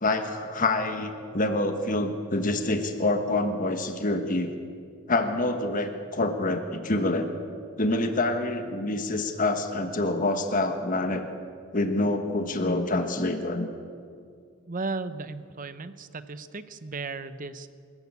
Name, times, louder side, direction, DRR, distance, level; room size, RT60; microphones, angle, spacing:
voice 1, 0.0-4.5 5.1-7.3 7.8-11.2 11.7-13.7, left 2 dB, 40° left, 6 dB, 1.4 m, -26 dB
voice 2, 14.7-17.7, right 3 dB, 40° right, 12 dB, 0.8 m, -35 dB
23.0 x 14.5 x 8.4 m, 2.3 s
head